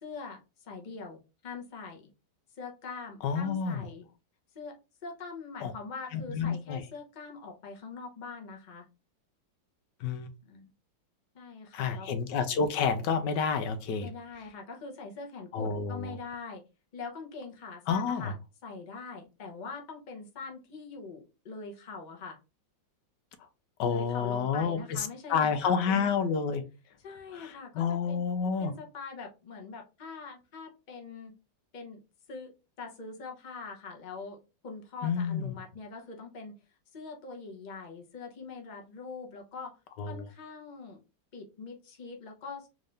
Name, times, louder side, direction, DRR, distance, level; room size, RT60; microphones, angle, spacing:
voice 1, 0.0-2.1 2.6-4.0 4.5-4.8 5.0-8.9 10.5-10.7 11.3-12.1 14.0-16.6 16.9-18.4 18.6-22.4 23.9-26.3 27.0-28.2 28.6-31.3 31.7-32.0 32.3-34.4 34.6-36.6 36.9-39.8 40.1-41.0 41.3-42.7, left 4 dB, 40° left, 0.7 m, -43 dB
voice 2, 3.2-3.8 5.6-5.7 6.1-6.8 10.0-10.3 11.7-14.1 15.5-16.2 17.9-18.3 23.8-26.6 27.3-28.7 35.0-35.6 40.0-40.3, left 6 dB, 70° left, 1.2 m, -29 dB
3.7 x 2.6 x 3.3 m
omnidirectional pair, 2.1 m